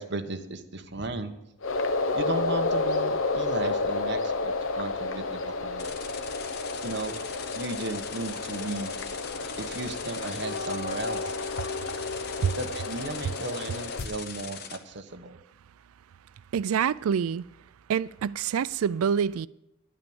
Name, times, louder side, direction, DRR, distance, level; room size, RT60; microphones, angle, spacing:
voice 1, 0.0-1.3 2.1-5.9 6.8-7.2 7.5-8.9 9.6-11.3 12.6-15.4, right 2 dB, 55° right, 1.0 m, -35 dB
sound 1, 1.6-14.0, left 3 dB, 70° left, 0.8 m, -31 dB
sound 2, 5.8-14.8, left 7 dB, 50° left, 1.0 m, -41 dB
voice 2, 16.5-17.4 17.9-19.5, right 7 dB, 90° right, 0.4 m, -26 dB
10.5 x 9.0 x 7.1 m
head